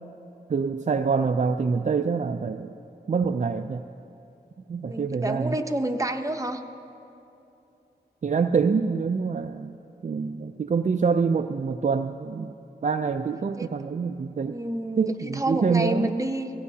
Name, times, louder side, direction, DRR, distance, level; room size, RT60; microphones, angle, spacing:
voice 1, 0.5-2.7 3.1-3.8 4.7-5.5 8.2-9.7 10.0-12.5 12.8-14.6 15.0-16.1, right 5 dB, 45° right, 6 dB, 0.4 m, -25 dB
voice 2, 4.8-6.6 13.6-13.8 14.4-16.5, right 1 dB, 20° right, 5 dB, 0.8 m, -29 dB
17.5 x 16.0 x 2.8 m, 2.8 s
cardioid pair, 50°, 18 cm